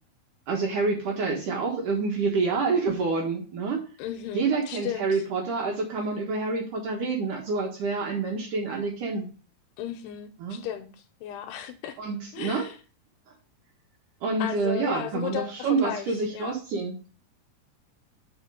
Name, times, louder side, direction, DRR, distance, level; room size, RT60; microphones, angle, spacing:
voice 1, 0.5-3.8 4.3-9.3 10.4-10.6 12.0-12.7 14.2-17.0, right 4 dB, 60° right, 0 dB, 2.4 m, -27 dB
voice 2, 4.0-5.2 9.8-10.9 11.2-12.0 12.3-12.8 14.4-16.6, left 11 dB, 80° left, 8 dB, 2.6 m, -35 dB
7.2 x 5.1 x 5.0 m, 0.36 s
omnidirectional pair, 4.9 m